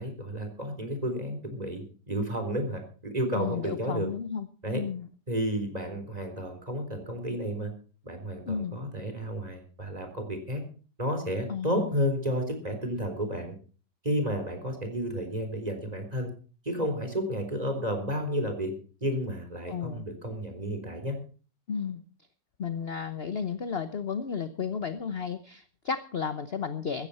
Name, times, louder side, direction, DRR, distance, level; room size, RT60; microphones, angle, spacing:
voice 1, 0.0-4.1 4.6-4.8 5.3-7.7 8.0-10.6 11.0-13.5 14.0-16.3 16.6-18.7 19.0-21.2, equal, 20° right, 6 dB, 4.1 m, -31 dB
voice 2, 3.3-4.5 4.7-5.1 8.4-8.8 11.5-11.9 19.7-20.0 21.7-22.0 22.6-27.1, left 6 dB, 45° left, 11 dB, 0.9 m, -33 dB
15.5 x 14.5 x 4.3 m, 0.38 s
omnidirectional pair, 1.9 m